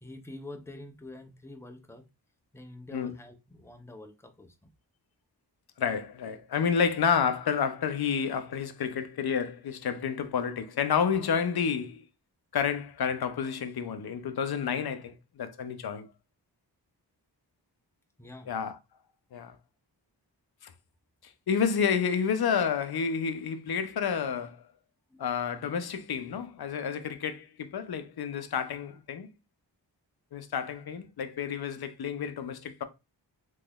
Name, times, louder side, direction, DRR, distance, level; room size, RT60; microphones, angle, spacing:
voice 1, 0.0-2.1 2.5-4.7 18.2-18.5 25.1-25.2, left 2 dB, 5° left, 0.5 m, -46 dB
voice 2, 5.8-12.0 12.5-16.1 18.5-18.8 19.3-19.6 20.6-20.7 21.2-24.6 25.2-29.3 30.3-32.8, left 7 dB, 60° left, 0.6 m, -30 dB
3.7 x 3.0 x 2.3 m
wide cardioid pair, 80°, 43 cm